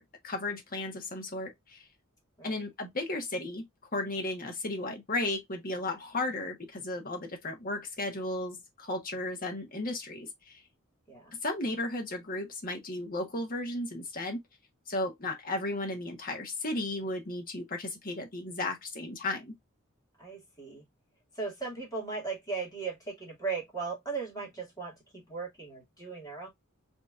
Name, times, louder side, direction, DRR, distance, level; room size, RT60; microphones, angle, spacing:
voice 1, 0.0-1.8 2.4-3.6 3.9-10.6 11.4-14.4 14.9-19.5, left 2 dB, 45° left, 1.3 m, -34 dB
voice 2, 20.2-20.8 21.4-26.5, right 4 dB, 15° left, 2.4 m, -37 dB
5.0 x 2.9 x 2.4 m
head